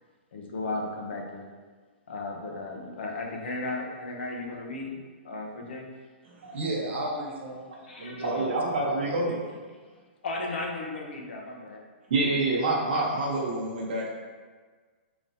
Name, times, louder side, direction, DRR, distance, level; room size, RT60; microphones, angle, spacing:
voice 1, 0.3-1.5 2.1-5.9 7.9-8.5 10.2-11.8, left 2 dB, 65° left, 1 dB, 0.7 m, -35 dB
voice 2, 6.3-8.5 8.8-9.2, right 2 dB, 80° right, -2 dB, 1.1 m, -34 dB
voice 3, 8.2-9.4 12.1-14.1, right 2 dB, 45° right, -4 dB, 1.0 m, -27 dB
4.9 x 3.0 x 2.7 m, 1.5 s
hypercardioid pair, 180°, 6 cm